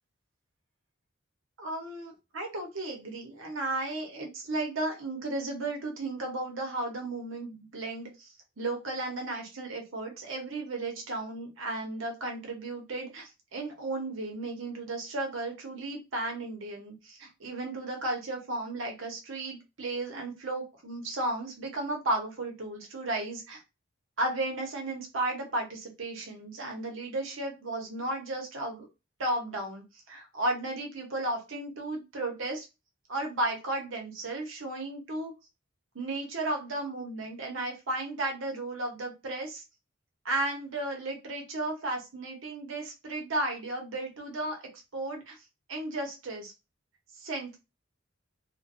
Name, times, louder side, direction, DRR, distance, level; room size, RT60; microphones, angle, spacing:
voice 1, 1.6-23.6 24.2-28.9 29.2-32.6 33.1-35.3 35.9-39.6 40.2-44.6 44.9-45.4 45.7-46.5 47.2-47.6, right 2 dB, 75° right, 2 dB, 0.8 m, -34 dB
2.4 x 2.1 x 2.4 m, 0.26 s
head